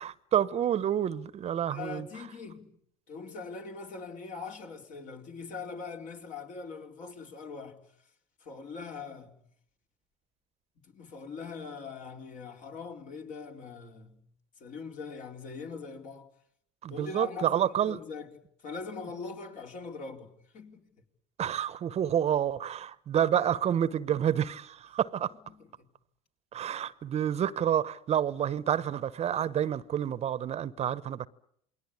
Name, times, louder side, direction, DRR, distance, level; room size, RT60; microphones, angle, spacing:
voice 1, 0.0-2.1 16.8-18.0 21.4-25.3 26.5-31.3, right 10 dB, 40° right, 1.0 m, -29 dB
voice 2, 1.7-2.7 3.1-7.8 8.4-9.3 10.8-14.2 14.6-16.3 16.9-18.3 18.6-20.9 25.8-25.9, left 4 dB, 50° left, 4.2 m, -42 dB
28.5 x 21.0 x 8.5 m
hypercardioid pair, 75°, 16 cm